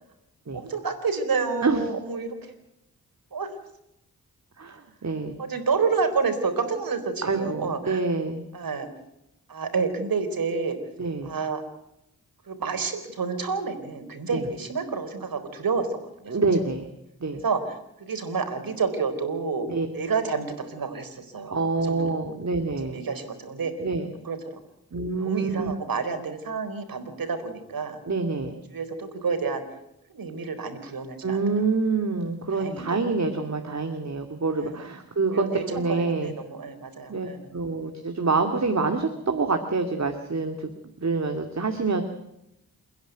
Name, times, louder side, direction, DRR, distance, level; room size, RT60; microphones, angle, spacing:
voice 1, 0.5-2.5 3.3-3.6 5.4-8.0 8.5-8.9 9.5-10.8 11.2-11.6 12.4-16.0 16.2-16.4 17.4-19.7 19.9-22.2 22.8-23.7 24.2-24.6 25.2-28.0 28.7-29.6 30.1-31.6 32.5-33.0 34.6-34.9 35.2-37.6, right 4 dB, 70° right, 7 dB, 4.4 m, -29 dB
voice 2, 4.6-5.4 7.2-8.4 11.0-11.4 14.3-14.4 16.3-16.8 17.2-17.4 19.7-19.9 21.5-23.0 23.8-24.1 24.9-25.8 28.1-28.5 31.2-36.3 37.1-40.7 41.0-42.0, right 3 dB, 50° right, 5 dB, 2.4 m, -26 dB
29.0 x 10.5 x 9.2 m, 0.84 s
cardioid pair, 45°, 36 cm